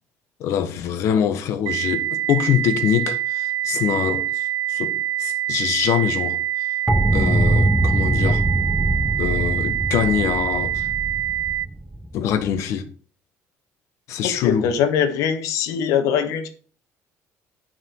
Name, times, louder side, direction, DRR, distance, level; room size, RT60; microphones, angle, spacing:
voice 1, 0.4-4.9 5.2-6.4 7.1-8.4 9.2-10.9 12.1-12.9 14.1-14.7, left 9 dB, 60° left, 1.3 m, -24 dB
sound 1, 1.7-11.7, right 12 dB, 60° right, 0.5 m, -25 dB
sound 2, 6.9-12.6, right 1 dB, 5° right, 0.5 m, -22 dB
voice 2, 14.2-16.5, left 8 dB, 75° left, 1.5 m, -22 dB
9.3 x 6.0 x 4.6 m
cardioid pair, 180°, 6 cm